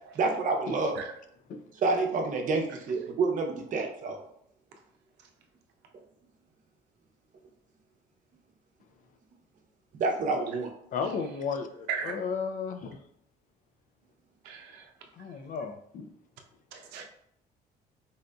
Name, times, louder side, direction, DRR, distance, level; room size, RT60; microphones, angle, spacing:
voice 1, 0.2-1.0 1.8-4.2 10.0-10.7, right 3 dB, 50° right, 2 dB, 0.7 m, -28 dB
voice 2, 10.9-13.0 15.1-16.1, left 5 dB, 50° left, 8 dB, 0.4 m, -34 dB
voice 3, 14.4-14.8 16.7-17.0, right 7 dB, 90° right, 3 dB, 0.6 m, -36 dB
4.1 x 2.5 x 2.2 m, 0.72 s
cardioid pair, 110°, 17 cm